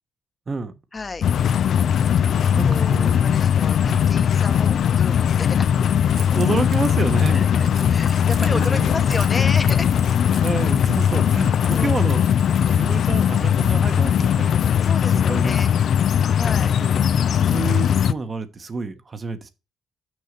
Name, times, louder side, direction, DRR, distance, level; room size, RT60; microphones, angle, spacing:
sound 1, 0.9-10.2, left 4 dB, 85° left, 2.0 m, -43 dB
voice 1, 0.9-1.3 2.4-5.7 7.3-9.9 11.7-12.0 14.8-15.7 16.3-16.7, left 3 dB, 30° left, 1.0 m, -32 dB
sound 2, 1.2-18.1, left 8 dB, 65° left, 0.4 m, -19 dB
voice 2, 2.5-3.2 3.9-4.0 6.3-7.6 8.4-9.1 10.4-12.2 12.6-14.5 15.1-15.5 16.1-16.4 16.8-16.9 17.4-19.5, right 4 dB, 35° right, 1.2 m, -29 dB
Keys jangling, 6.1-12.9, right 6 dB, 60° right, 1.3 m, -42 dB
6.5 x 5.4 x 6.7 m
cardioid pair, 90°, 0 cm